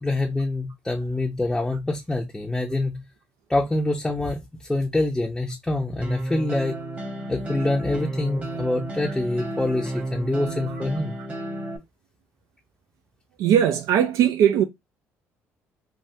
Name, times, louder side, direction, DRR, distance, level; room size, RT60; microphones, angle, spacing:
voice 1, 0.0-3.0 3.5-6.8 7.3-11.1, left 2 dB, 10° left, 0.5 m, -25 dB
sound 1, 6.0-11.8, right 1 dB, 30° right, 1.1 m, -32 dB
voice 2, 13.4-14.6, right 9 dB, 80° right, 0.3 m, -20 dB
3.4 x 2.2 x 2.6 m
cardioid pair, 90°, 5 cm